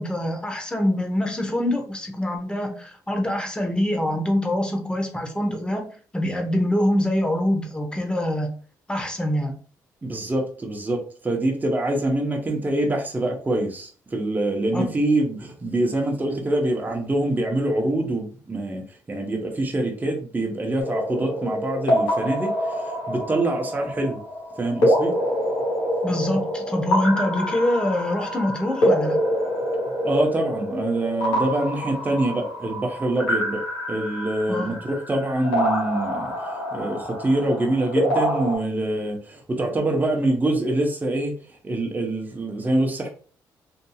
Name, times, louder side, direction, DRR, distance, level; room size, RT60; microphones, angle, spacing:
voice 1, 0.0-5.8 6.1-8.5 8.9-9.5 14.7-14.9 26.0-29.2 34.5-34.8, left 1 dB, 10° left, 0.8 m, -24 dB
voice 2, 10.0-24.2 24.6-25.1 30.0-33.6 33.9-36.3 36.7-41.3 41.6-43.1, right 1 dB, 25° right, 0.8 m, -25 dB
sound 1, 20.8-38.6, equal, 85° left, 1.4 m, -26 dB
2.7 x 2.6 x 2.3 m
supercardioid pair, 65°, 7 cm